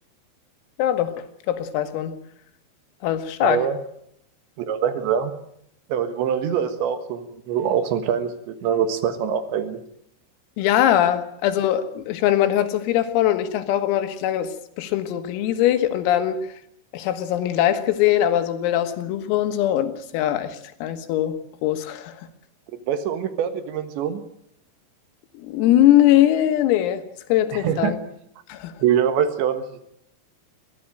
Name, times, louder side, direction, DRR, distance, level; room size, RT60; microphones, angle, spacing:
voice 1, 0.8-1.1 1.5-2.2 3.0-3.6 10.6-14.5 14.8-16.4 16.9-22.1 25.5-27.0 27.3-28.0 28.5-28.7, left 12 dB, 85° left, 9 dB, 4.2 m, -21 dB
voice 2, 3.4-3.8 4.7-5.3 5.9-9.8 22.7-24.2 27.5-28.0 28.8-29.8, right 8 dB, 70° right, 9 dB, 3.5 m, -24 dB
22.5 x 16.0 x 9.1 m, 0.73 s
omnidirectional pair, 5.9 m